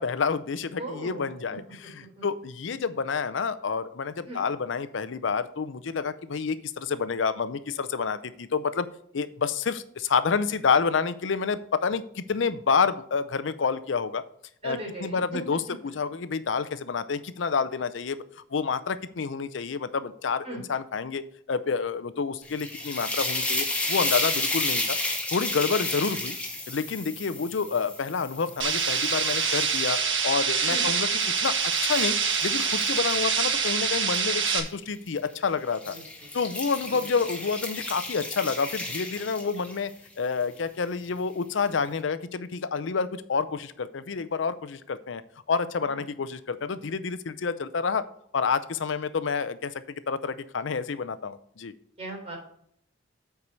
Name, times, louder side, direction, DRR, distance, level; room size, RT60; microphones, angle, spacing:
voice 1, 0.0-1.6 2.2-8.9 9.1-14.2 14.6-15.6 16.0-18.2 18.5-21.2 21.5-25.0 25.3-26.4 26.7-30.0 30.2-31.1 31.4-31.5 31.8-32.2 32.4-35.9 36.3-39.9 40.2-45.2 45.5-48.0 48.3-49.7 50.1-51.7, left 5 dB, 70° left, 13 dB, 0.5 m, -28 dB
voice 2, 0.8-1.3 2.0-2.2 4.3-4.4 14.6-15.4 20.4-20.6 25.7-25.8 30.6-30.9 35.9-36.4 36.9-37.0 45.8-46.0 52.0-52.4, right 2 dB, 35° right, -1 dB, 3.5 m, -38 dB
sound 1, 22.4-29.6 30.2-34.2 35.1-35.3 35.7-39.9, left 2 dB, 5° left, 1.6 m, -32 dB
sound 2, 28.6-34.6, right 6 dB, 70° right, 1.5 m, -25 dB
8.6 x 4.7 x 5.2 m, 0.67 s
head